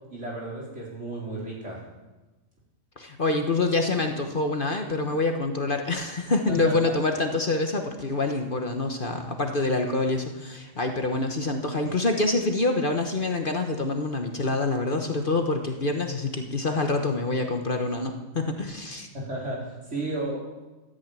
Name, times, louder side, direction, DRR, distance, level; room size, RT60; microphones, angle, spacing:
voice 1, 0.1-1.8 6.5-6.8 19.1-20.4, right 2 dB, 60° right, -4 dB, 4.6 m, -33 dB
voice 2, 3.0-19.1, left 2 dB, 40° left, 4 dB, 1.3 m, -26 dB
14.0 x 9.3 x 8.9 m, 1.1 s
omnidirectional pair, 1.4 m